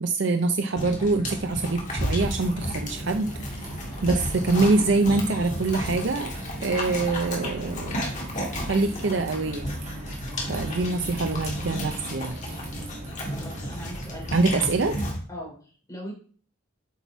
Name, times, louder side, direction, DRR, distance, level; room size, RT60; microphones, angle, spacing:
voice 1, 0.0-3.7 4.0-6.3 6.6-8.0 8.7-9.7 10.5-12.3 14.3-15.0, right 3 dB, 60° right, 7 dB, 0.6 m, -25 dB
sound 1, 0.8-15.2, equal, 35° left, 2.2 m, -32 dB
sound 2, 2.1-15.0, right 1 dB, 35° right, 2.5 m, -42 dB
voice 2, 13.4-14.6 15.3-16.1, equal, 15° left, -1 dB, 3.1 m, -40 dB
8.3 x 5.9 x 4.6 m, 0.44 s
head